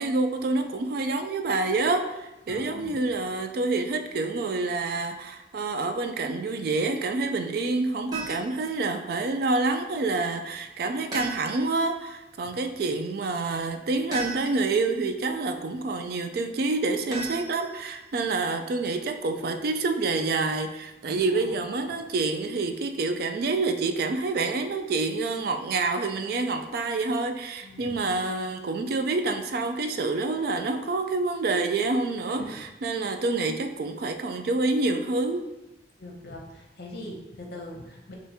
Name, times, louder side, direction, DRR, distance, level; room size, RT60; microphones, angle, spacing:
voice 1, 0.0-35.5, right 3 dB, 55° right, 6 dB, 0.3 m, -27 dB
voice 2, 2.5-3.0 21.0-21.6 27.6-28.2 32.4-32.6 36.0-38.1, left 1 dB, 55° left, 0 dB, 0.8 m, -42 dB
sound 1, 8.1-8.6 11.1-11.8 14.1-14.8 17.1-18.0, right 3 dB, 20° right, 1.0 m, -36 dB
3.5 x 2.5 x 4.1 m, 0.98 s
head